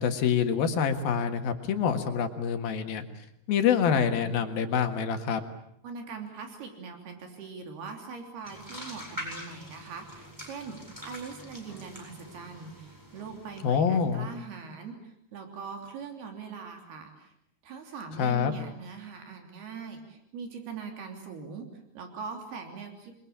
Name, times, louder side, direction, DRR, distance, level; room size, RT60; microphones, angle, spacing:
voice 1, 0.0-3.0 3.5-5.4 13.6-14.3 18.2-18.5, left 7 dB, 70° left, 6 dB, 3.5 m, -26 dB
voice 2, 5.8-17.3 17.6-23.2, right 5 dB, 80° right, 4 dB, 5.2 m, -41 dB
sound 1, 8.4-14.3, equal, 5° right, 7.6 m, -44 dB
28.5 x 22.5 x 8.5 m, 0.73 s
omnidirectional pair, 4.4 m